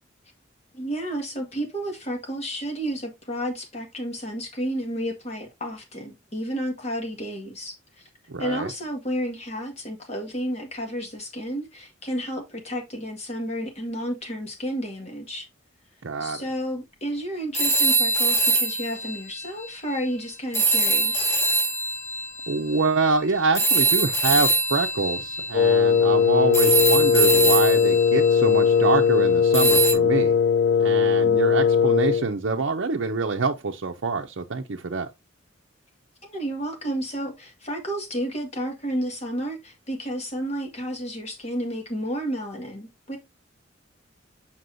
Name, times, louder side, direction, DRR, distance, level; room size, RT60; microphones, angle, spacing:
voice 1, 0.7-8.0 8.4-15.5 16.2-21.3 31.0-31.4 36.2-43.2, equal, 35° left, 1.8 m, -31 dB
voice 2, 8.3-8.7 16.0-16.4 22.5-30.4 30.8-35.1, right 4 dB, 75° right, 0.7 m, -26 dB
sound 1, 17.5-20.0 20.5-29.0 29.5-29.9, right 2 dB, 15° left, 3.0 m, -24 dB
Wind instrument woodwind instrument, 25.5-32.3, left 6 dB, 55° left, 0.3 m, -19 dB
7.7 x 5.9 x 2.6 m
head